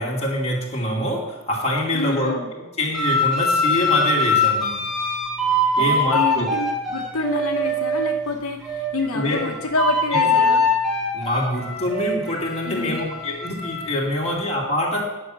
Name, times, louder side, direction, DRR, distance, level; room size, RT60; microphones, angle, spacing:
voice 1, 0.0-2.3 2.8-4.8 5.8-6.5 9.1-9.4 10.1-10.2 11.1-15.0, left 1 dB, 30° left, -4 dB, 2.6 m, -25 dB
voice 2, 1.9-2.5 5.8-10.6 12.6-13.0, left 3 dB, 75° left, 2 dB, 1.0 m, -27 dB
sound 1, 2.9-8.2 8.6-13.9, left 2 dB, ahead, 2.3 m, -23 dB
10.0 x 6.4 x 7.6 m, 1.1 s
head